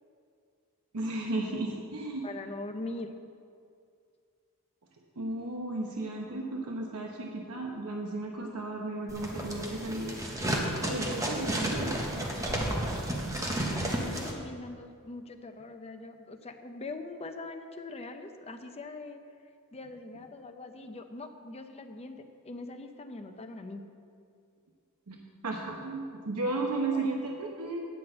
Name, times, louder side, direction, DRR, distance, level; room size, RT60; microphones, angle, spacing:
voice 1, 0.9-2.3 5.2-10.2 10.8-12.2 25.1-27.8, right 2 dB, 85° right, 0 dB, 0.9 m, -34 dB
voice 2, 2.2-3.1 13.9-19.2 19.7-23.8 26.6-27.1, left 2 dB, 30° left, 6 dB, 0.7 m, -42 dB
sound 1, 9.1-14.3, right 1 dB, 15° right, 1.2 m, -32 dB
10.0 x 5.9 x 7.8 m, 2.3 s
head